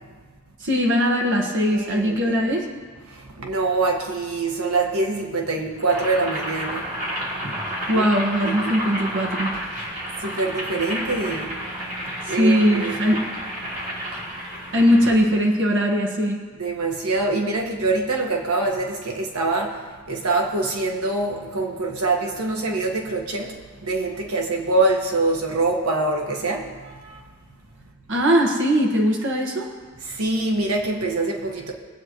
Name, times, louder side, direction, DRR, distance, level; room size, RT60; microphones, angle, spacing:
voice 1, 0.6-2.7 7.4-7.5 7.9-9.5 12.2-13.3 14.7-16.5 28.1-29.7, equal, 55° right, 1 dB, 1.4 m, -20 dB
voice 2, 1.7-2.4 3.1-6.9 7.9-8.1 8.4-8.8 10.2-11.5 12.3-13.0 16.6-27.2 30.0-31.7, right 2 dB, 75° right, 1 dB, 1.5 m, -24 dB
Boiling, 5.8-15.2, equal, 40° right, 3.5 m, -31 dB
22.5 x 8.7 x 3.1 m, 1.5 s
head